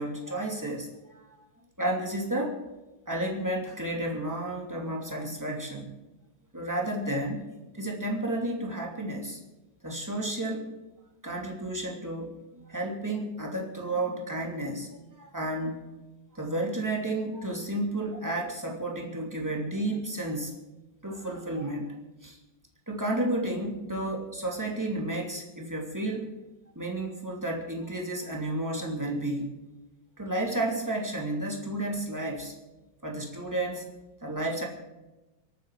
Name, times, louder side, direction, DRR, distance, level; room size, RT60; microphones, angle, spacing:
voice 1, 0.0-1.5 1.8-2.6 3.1-5.9 6.5-7.4 7.7-9.4 9.8-10.7 11.2-14.9 15.1-15.8 16.3-20.5 21.0-21.9 22.2-22.4 22.9-26.3 26.7-29.5 30.2-32.5 33.0-33.9 34.2-34.7, right 1 dB, 5° right, -1 dB, 2.2 m, -32 dB
26.0 x 9.2 x 4.8 m, 1.1 s
omnidirectional pair, 3.5 m